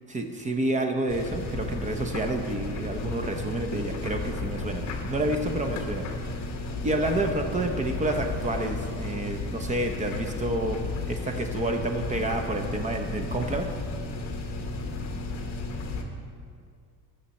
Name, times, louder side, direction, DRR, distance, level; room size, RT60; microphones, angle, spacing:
voice 1, 0.1-4.8 5.1-6.1 6.8-13.7, right 2 dB, 20° right, 5 dB, 0.7 m, -29 dB
sound 1, 1.1-16.0, left 2 dB, 45° left, 1.3 m, -33 dB
19.0 x 6.7 x 4.2 m, 2.2 s
cardioid pair, 155°, 37 cm